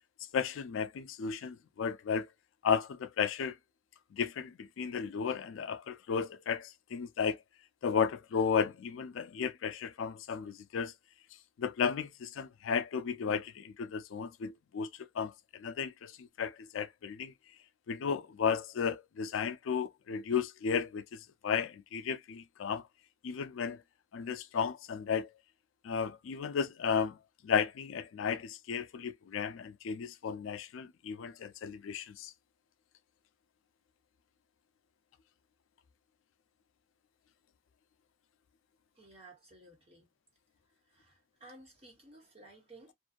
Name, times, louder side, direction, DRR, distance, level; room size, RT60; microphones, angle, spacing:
voice 1, 0.3-2.3 2.6-3.6 4.1-7.4 7.8-10.9 11.6-17.3 17.9-22.9 23.2-23.8 24.1-25.3 25.8-27.2 27.4-32.3, left 6 dB, 85° left, 0.4 m, -34 dB
voice 2, 38.9-40.1 40.9-42.9, right 2 dB, 30° right, 1.1 m, -56 dB
2.5 x 2.2 x 2.4 m
head